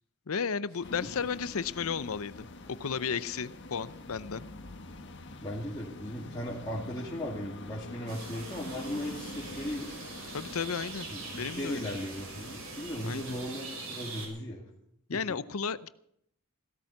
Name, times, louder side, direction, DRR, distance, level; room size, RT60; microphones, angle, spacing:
voice 1, 0.3-2.5 2.8-4.4 10.3-11.1 11.3-11.8 13.0-13.4 15.1-15.9, left 6 dB, 80° left, 16 dB, 0.7 m, -33 dB
sound 1, 0.8-13.5, left 2 dB, 55° left, 1.6 m, -46 dB
voice 2, 5.4-9.9 11.1-14.6 15.1-15.2, equal, 20° left, -5 dB, 2.4 m, -37 dB
sound 2, 8.1-14.3, right 3 dB, 75° right, 6.1 m, -43 dB
16.5 x 13.0 x 5.9 m, 0.73 s
head